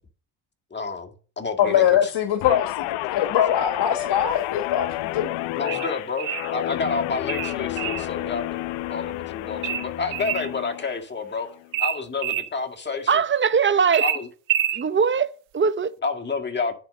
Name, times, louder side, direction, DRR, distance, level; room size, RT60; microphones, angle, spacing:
voice 1, 0.7-2.1 5.6-11.5 11.8-13.2 14.0-14.3 16.0-16.8, left 4 dB, 25° left, 1.9 m, -30 dB
voice 2, 1.6-4.9 5.1-5.3, left 10 dB, 60° left, 1.4 m, -22 dB
Guitar, 2.4-11.0 11.4-11.7, left 16 dB, 90° left, 0.6 m, -30 dB
sound 1, 5.7-6.5 7.3-8.1 9.6-10.5 11.7-12.5 13.9-14.8, right 11 dB, 80° right, 1.0 m, -27 dB
voice 3, 13.1-14.1 14.7-15.9, right 6 dB, 25° right, 0.8 m, -21 dB
10.5 x 4.7 x 6.4 m
supercardioid pair, 75°, 45 cm